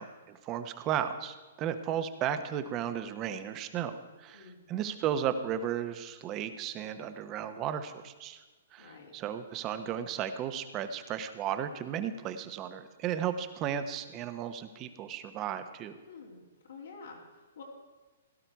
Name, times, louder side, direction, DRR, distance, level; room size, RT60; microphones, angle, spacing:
voice 1, 0.0-8.4 8.7-15.9, right 9 dB, 25° right, 10 dB, 0.9 m, -34 dB
voice 2, 4.3-4.7 8.8-9.1 16.1-16.4 16.7-17.6, left 4 dB, 85° left, -3 dB, 3.3 m, -49 dB
17.0 x 11.5 x 4.7 m, 1.3 s
hypercardioid pair, 155°, 0 cm